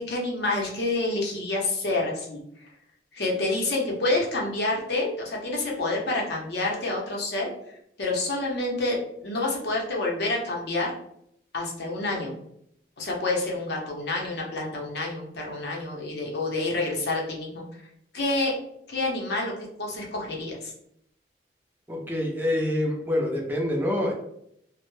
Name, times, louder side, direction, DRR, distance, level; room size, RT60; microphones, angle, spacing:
voice 1, 0.0-2.4 3.1-7.5 8.0-10.9 11.5-12.3 13.0-17.6 18.1-18.5 18.9-19.5 19.8-20.7, left 2 dB, 70° left, -2 dB, 0.7 m, -28 dB
voice 2, 21.9-24.1, left 1 dB, 10° right, -1 dB, 0.4 m, -26 dB
2.1 x 2.0 x 3.0 m, 0.73 s
head